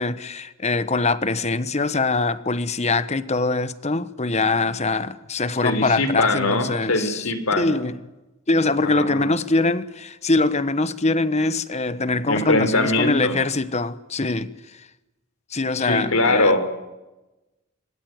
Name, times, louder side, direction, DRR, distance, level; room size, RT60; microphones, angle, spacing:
voice 1, 0.0-8.0 8.5-14.8 15.5-16.6, left 3 dB, 30° left, 1.2 m, -23 dB
voice 2, 5.6-7.7 8.8-9.3 12.3-13.4 15.8-16.6, left 2 dB, 85° left, 3.8 m, -22 dB
26.5 x 21.0 x 9.5 m
head